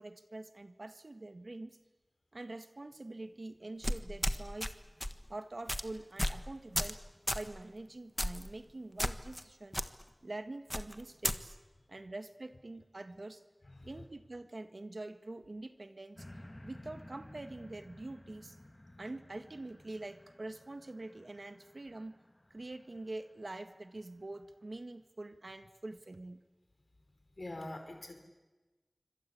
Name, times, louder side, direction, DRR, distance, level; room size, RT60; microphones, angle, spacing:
voice 1, 0.0-1.8 2.3-4.7 5.3-7.0 7.3-9.8 10.2-11.6 11.9-13.4 13.8-16.3 16.6-18.6 19.0-22.1 22.5-26.4, right 2 dB, 80° right, 9 dB, 1.7 m, -45 dB
sound 1, 3.8-4.7 5.0-5.2 5.7-5.8 6.2-6.4 6.7-7.0 7.3-7.5 8.2-8.5 9.0-9.4 9.7-9.9 10.7-11.4, equal, 15° left, 1.5 m, -33 dB
sound 2, 16.2-23.5 24.1-24.2, left 1 dB, 30° left, 3.5 m, -55 dB
voice 2, 27.4-28.2, left 1 dB, 80° left, 5 dB, 4.9 m, -44 dB
27.0 x 25.5 x 8.6 m, 1.2 s
wide cardioid pair, 45°, 0 cm